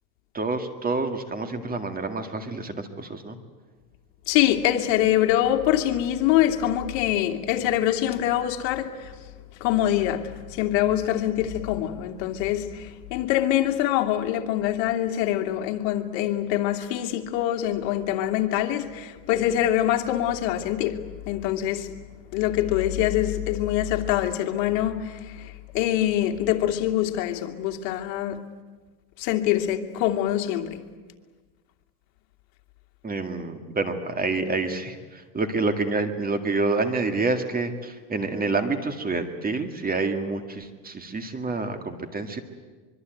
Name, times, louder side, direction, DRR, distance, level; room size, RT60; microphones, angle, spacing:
voice 1, 0.3-3.4 33.0-42.4, right 3 dB, 20° right, 8 dB, 2.0 m, -28 dB
voice 2, 4.3-9.1 9.6-21.0 21.3-21.9 22.3-28.4 29.2-30.8, left 12 dB, 65° left, 5 dB, 2.6 m, -24 dB
24.5 x 23.0 x 9.3 m, 1.4 s
supercardioid pair, 130°, 49 cm